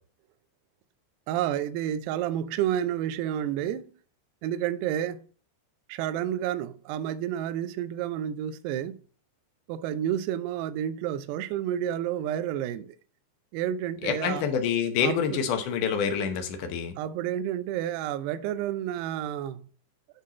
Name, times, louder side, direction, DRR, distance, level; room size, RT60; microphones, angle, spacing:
voice 1, 1.3-3.9 4.4-5.2 5.9-9.0 9.7-13.0 13.5-14.4 15.0-15.4 17.0-19.6, right 10 dB, 80° right, 2.5 m, -30 dB
voice 2, 14.0-17.0, left 7 dB, 75° left, 1.9 m, -27 dB
11.5 x 4.0 x 4.2 m
omnidirectional pair, 5.2 m